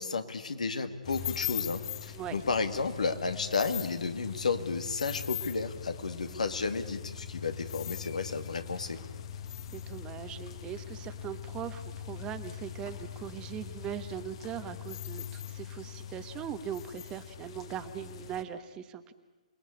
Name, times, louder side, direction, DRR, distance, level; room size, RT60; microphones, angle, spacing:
voice 1, 0.0-9.0, left 4 dB, 70° left, 8 dB, 2.2 m, -32 dB
sound 1, 1.0-18.4, left 9 dB, 45° left, 1.7 m, -41 dB
voice 2, 9.7-19.1, right 9 dB, 20° right, 10 dB, 1.3 m, -40 dB
27.5 x 20.5 x 8.6 m, 1.3 s
figure-of-eight pair, 130°, 4 cm